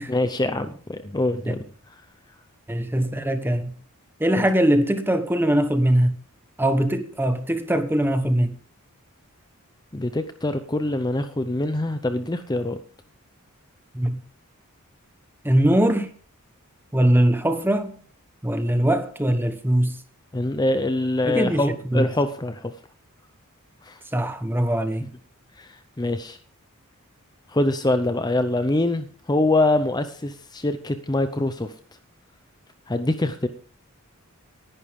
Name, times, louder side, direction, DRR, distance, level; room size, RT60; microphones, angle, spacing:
voice 1, 0.0-1.6 9.9-12.8 20.3-22.7 23.8-24.0 25.6-25.7 26.0-26.4 27.5-31.7 32.9-33.5, left 2 dB, 20° left, 0.7 m, -24 dB
voice 2, 2.7-3.7 4.2-6.2 6.6-8.6 13.9-14.2 15.4-16.1 16.9-18.0 18.4-20.0 21.2-22.1 24.1-25.1, right 1 dB, 10° right, 1.2 m, -21 dB
18.5 x 11.0 x 3.7 m
head